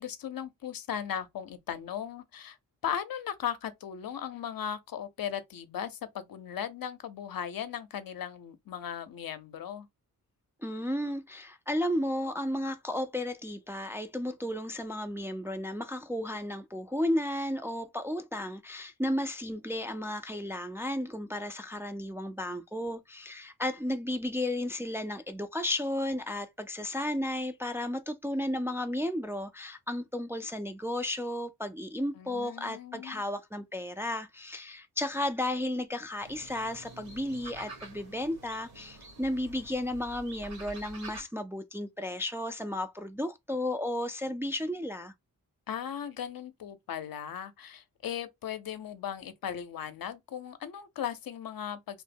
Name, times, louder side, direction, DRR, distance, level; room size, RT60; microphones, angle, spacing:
voice 1, 0.0-2.6 2.8-9.9 32.1-33.2 45.7-52.0, left 9 dB, 70° left, 0.6 m, -37 dB
voice 2, 10.6-45.1, left 1 dB, 5° right, 0.3 m, -33 dB
sound 1, 36.2-41.2, right 1 dB, 75° right, 1.6 m, -48 dB
3.0 x 2.1 x 3.3 m
cardioid pair, 80°, 37 cm